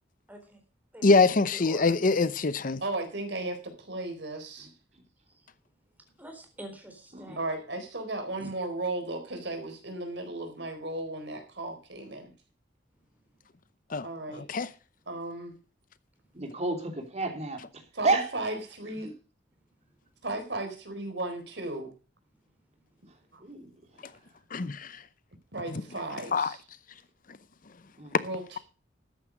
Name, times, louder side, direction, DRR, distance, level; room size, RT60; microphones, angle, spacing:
voice 1, 0.3-0.6 0.9-1.1 1.3-1.9 6.2-7.4 8.4-8.5, right 1 dB, 10° right, 4.0 m, -46 dB
voice 2, 1.0-2.8 13.9-14.7 24.5-25.0 25.7-25.8 26.3-26.5 28.1-28.3, left 3 dB, 50° left, 0.8 m, -24 dB
voice 3, 2.8-4.7 7.4-12.3 14.0-14.4 15.1-15.6 17.9-19.1 20.2-21.9 23.3-23.4 25.5-26.6 28.2-28.6, right 2 dB, 70° right, 4.2 m, -35 dB
voice 4, 16.3-17.6 18.0-18.3 23.4-23.6 28.0-28.2, right 3 dB, 40° right, 3.4 m, -29 dB
13.5 x 9.8 x 5.2 m
head